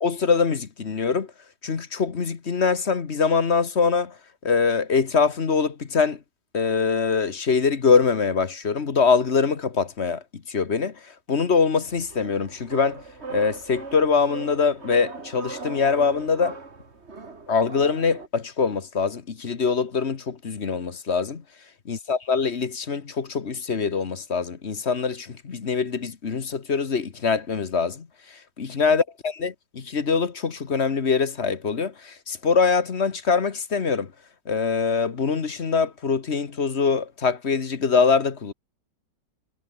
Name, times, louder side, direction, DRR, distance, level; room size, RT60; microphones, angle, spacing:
voice 1, 0.0-1.3 1.6-4.2 4.4-6.2 6.5-13.0 13.3-16.6 17.5-21.4 21.8-34.1 34.5-38.5, left 5 dB, 40° left, 1.6 m, -23 dB
sound 1, 11.8-18.3, right 4 dB, 35° right, 2.6 m, -39 dB
omnidirectional pair, 1.9 m